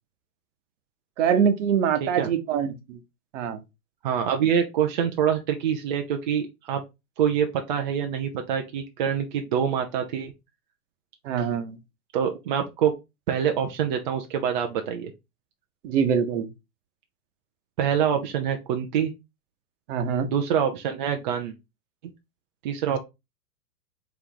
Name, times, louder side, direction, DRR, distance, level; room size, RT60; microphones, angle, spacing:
voice 1, 1.2-3.0 3.3-3.6 11.2-11.8 15.8-16.5 19.9-20.3 22.9-23.0, right 7 dB, 50° right, 0.9 m, -24 dB
voice 2, 4.0-6.8 7.2-10.3 12.1-12.9 13.3-15.1 17.8-19.1 20.3-21.5 22.6-23.0, right 8 dB, 30° right, 0.4 m, -25 dB
3.4 x 3.0 x 3.6 m
hypercardioid pair, 115°, 49 cm